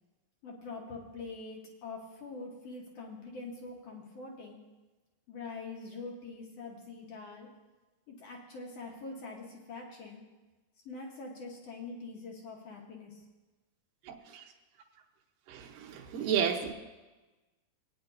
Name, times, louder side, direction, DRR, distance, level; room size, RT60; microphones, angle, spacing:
voice 1, 0.4-4.6 5.3-7.5 8.1-10.2 10.8-13.2, left 3 dB, 70° left, 0 dB, 1.5 m, -44 dB
voice 2, 14.1-14.4 15.5-16.7, right 8 dB, 70° right, 0 dB, 2.2 m, -32 dB
20.5 x 9.5 x 2.6 m, 1.2 s
omnidirectional pair, 4.6 m